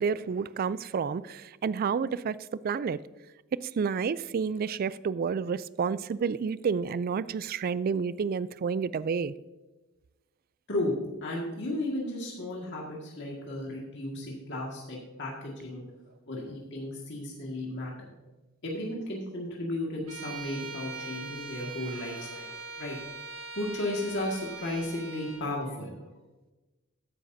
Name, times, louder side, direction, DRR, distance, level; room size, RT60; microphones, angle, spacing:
voice 1, 0.0-3.0 3.5-9.3, right 6 dB, 45° right, 18 dB, 0.3 m, -30 dB
voice 2, 10.7-15.8 16.3-18.1 18.6-23.0 23.6-26.0, left 1 dB, 60° left, -3 dB, 1.9 m, -34 dB
Bowed string instrument, 20.1-25.5, right 3 dB, 80° right, 2.5 m, -41 dB
13.5 x 10.0 x 2.7 m, 1.1 s
head